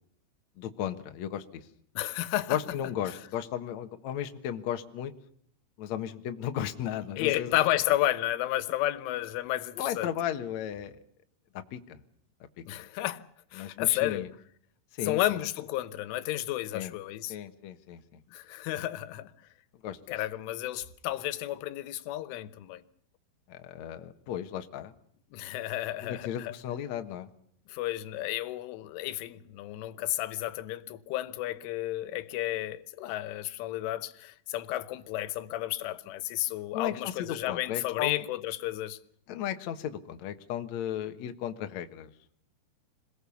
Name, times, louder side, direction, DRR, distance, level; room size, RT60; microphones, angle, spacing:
voice 1, 0.6-1.6 2.5-5.1 5.8-7.6 9.8-11.0 11.7-12.0 13.6-14.3 14.9-15.4 16.7-16.9 17.3-18.0 19.8-20.0 23.5-24.9 26.0-27.3 36.7-38.2 39.3-42.1, left 10 dB, 70° left, 1.7 m, -35 dB
voice 2, 2.0-2.6 3.1-3.2 7.2-10.1 12.7-13.2 13.5-14.3 15.0-17.4 18.3-19.3 20.1-22.8 25.3-26.5 27.7-39.0, left 15 dB, 90° left, 3.5 m, -32 dB
27.0 x 18.0 x 7.2 m
omnidirectional pair, 5.5 m